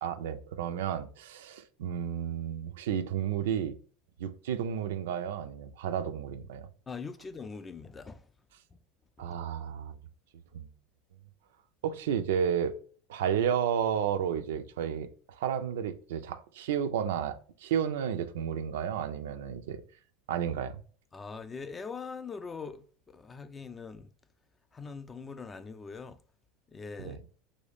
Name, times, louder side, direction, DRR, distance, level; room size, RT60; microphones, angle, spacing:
voice 1, 0.0-3.8 4.2-6.7 9.2-10.0 10.5-10.7 11.8-12.7 13.1-15.1 15.4-19.8 20.3-20.8 27.0-27.2, right 8 dB, 85° right, 0.4 m, -32 dB
voice 2, 6.9-8.2 9.2-9.3 21.1-22.9 23.1-24.1 24.7-26.2 26.7-27.2, left 5 dB, 20° left, 0.3 m, -42 dB
3.1 x 2.7 x 3.4 m
supercardioid pair, 115°, 0 cm